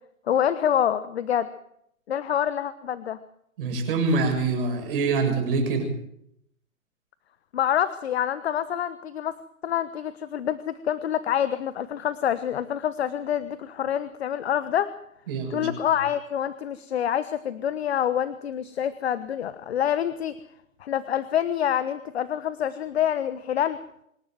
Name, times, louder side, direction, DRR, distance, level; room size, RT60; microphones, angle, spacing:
voice 1, 0.3-1.5 2.1-3.2 7.5-9.3 9.6-14.9 15.5-20.3 20.8-23.8, left 10 dB, 50° left, 14 dB, 1.2 m, -26 dB
voice 2, 3.6-5.9 15.3-15.7, right 4 dB, 40° right, 4 dB, 7.2 m, -25 dB
26.0 x 12.0 x 9.3 m, 0.75 s
figure-of-eight pair, 130°, 41 cm